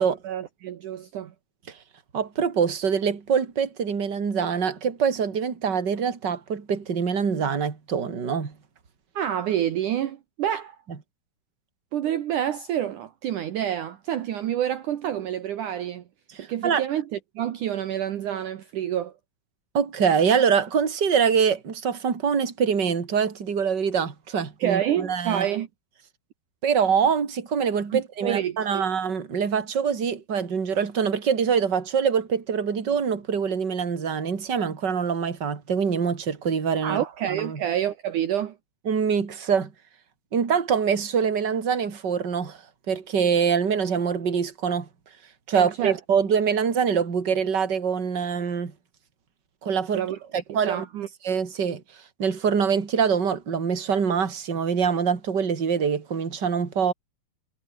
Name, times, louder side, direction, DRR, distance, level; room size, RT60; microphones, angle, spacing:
voice 1, 0.0-1.3 9.1-10.8 11.9-16.0 16.4-19.1 24.6-25.7 27.9-28.9 36.8-38.6 45.5-46.0 49.9-50.2 50.5-51.1, right 10 dB, 65° right, 2.7 m, -28 dB
voice 2, 2.1-8.5 16.4-16.8 19.7-25.4 26.6-37.0 37.3-37.6 38.9-39.7 40.3-42.6 42.9-44.9 45.5-48.7 49.6-50.0 50.3-50.8 51.2-51.8 52.2-56.9, right 6 dB, 30° right, 3.1 m, -24 dB
omnidirectional pair, 4.2 m